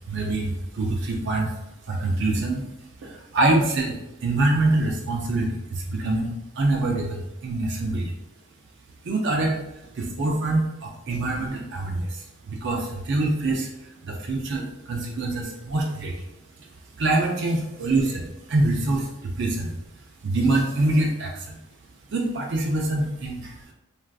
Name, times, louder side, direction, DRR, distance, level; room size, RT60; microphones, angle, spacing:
voice 1, 0.0-1.6 1.8-2.7 3.0-8.2 9.0-16.3 16.6-19.8 20.2-21.6 22.1-23.7, right 2 dB, 55° right, 0 dB, 0.4 m, -25 dB
3.3 x 2.4 x 2.3 m, 0.90 s
head